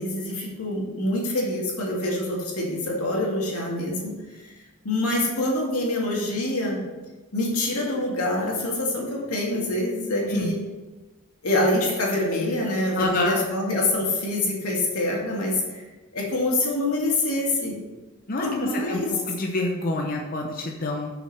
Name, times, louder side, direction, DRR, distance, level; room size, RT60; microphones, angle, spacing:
voice 1, 0.0-4.1 4.8-6.8 7.3-10.6 11.4-15.8 16.1-17.7 18.4-19.1, left 1 dB, 90° left, -2 dB, 2.3 m, -25 dB
voice 2, 13.0-13.4 18.3-21.1, left 2 dB, 40° left, 1 dB, 0.7 m, -27 dB
6.8 x 6.0 x 5.6 m, 1.2 s
head